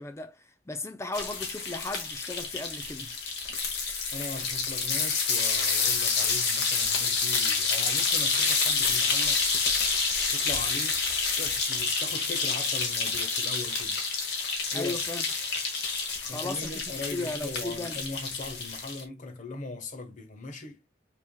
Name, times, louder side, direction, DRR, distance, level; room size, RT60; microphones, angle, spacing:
voice 1, 0.0-3.1 14.7-15.2 16.2-18.0, left 2 dB, 15° left, 0.4 m, -36 dB
sound 1, 1.1-19.0, left 4 dB, 55° left, 1.4 m, -28 dB
voice 2, 4.1-9.4 10.3-11.0 11.4-14.0 14.7-14.9 16.3-20.8, left 3 dB, 40° left, 1.0 m, -39 dB
5.5 x 3.5 x 2.2 m
head